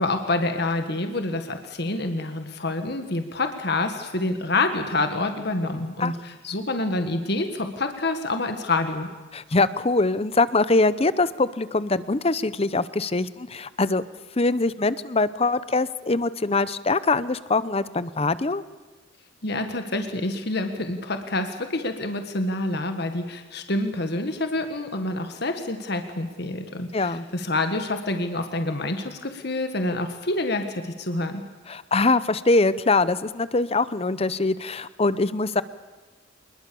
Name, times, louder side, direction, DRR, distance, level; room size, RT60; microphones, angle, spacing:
voice 1, 0.0-9.1 19.4-31.4, left 2 dB, 55° left, 6 dB, 1.7 m, -27 dB
voice 2, 9.3-14.0 14.4-18.6 26.9-27.2 31.7-35.6, left 3 dB, 30° left, 16 dB, 0.8 m, -23 dB
26.0 x 21.0 x 7.0 m, 1.3 s
head